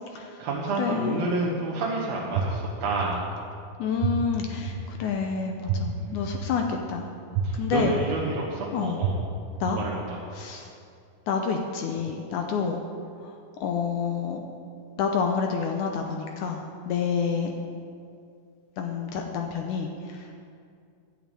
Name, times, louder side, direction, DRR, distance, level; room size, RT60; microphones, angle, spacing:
voice 1, 0.1-3.3 6.0-6.2 7.4-9.1 9.8-10.2, right 3 dB, 60° right, -4 dB, 2.0 m, -29 dB
voice 2, 0.8-1.2 3.8-7.1 7.5-7.9 8.7-9.0 9.6-9.8 10.4-10.7 11.3-12.8 13.6-14.4 15.0-17.5 18.8-19.9, left 6 dB, 75° left, 3 dB, 1.9 m, -28 dB
sound 1, 2.3-2.4 3.0-3.1 4.0-4.1 4.7-4.8 5.7-5.8 6.3-6.4 7.3-7.4 8.0-8.1 9.0-9.1 9.7-9.8, right 13 dB, 85° right, 2.8 m, -26 dB
11.5 x 6.8 x 9.0 m, 2.4 s
omnidirectional pair, 4.1 m